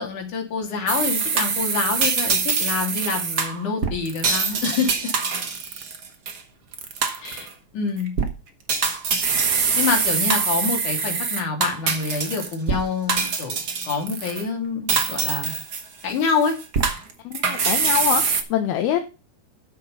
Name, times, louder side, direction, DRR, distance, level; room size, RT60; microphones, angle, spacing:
voice 1, 0.0-4.9 7.2-7.5 7.7-8.1 9.8-15.5 16.0-16.6, left 5 dB, 55° left, 2 dB, 4.1 m, -26 dB
sound 1, 0.9-6.4 6.7-7.5 8.0-8.3 8.7-12.8 13.1-14.4 14.9-16.1 16.4-18.4, right 5 dB, 85° right, 0.8 m, -24 dB
voice 2, 17.2-19.0, left 11 dB, 75° left, 6 dB, 2.9 m, -24 dB
11.5 x 6.5 x 5.4 m, 0.30 s
omnidirectional pair, 4.6 m